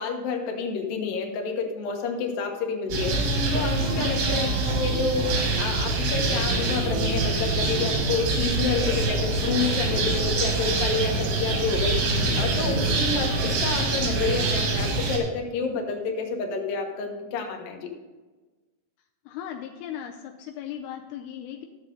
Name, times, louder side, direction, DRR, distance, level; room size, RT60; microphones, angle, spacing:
voice 1, 0.0-17.8, left 4 dB, 65° left, 2 dB, 2.8 m, -29 dB
sound 1, 2.9-15.2, right 2 dB, 80° right, 3.9 m, -25 dB
voice 2, 19.3-21.7, left 10 dB, 85° left, 4 dB, 2.6 m, -37 dB
14.0 x 7.3 x 3.8 m, 1.3 s
omnidirectional pair, 4.6 m